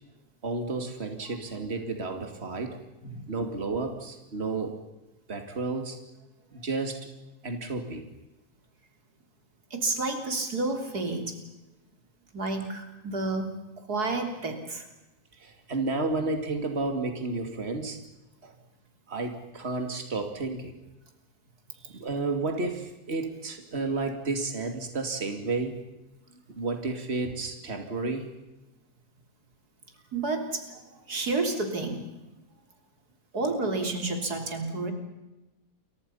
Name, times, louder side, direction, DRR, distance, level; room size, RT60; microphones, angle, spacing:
voice 1, 0.4-2.8 3.3-4.8 5.3-6.0 6.5-7.0 7.4-8.1 15.3-18.0 18.4-18.5 19.1-20.7 21.9-25.8 26.5-28.3, right 3 dB, 40° right, 5 dB, 2.8 m, -31 dB
voice 2, 9.7-11.4 12.3-14.9 21.8-22.0 30.1-32.0 33.3-34.9, right 3 dB, 90° right, 5 dB, 3.9 m, -30 dB
29.5 x 24.0 x 5.7 m, 1.0 s
omnidirectional pair, 1.6 m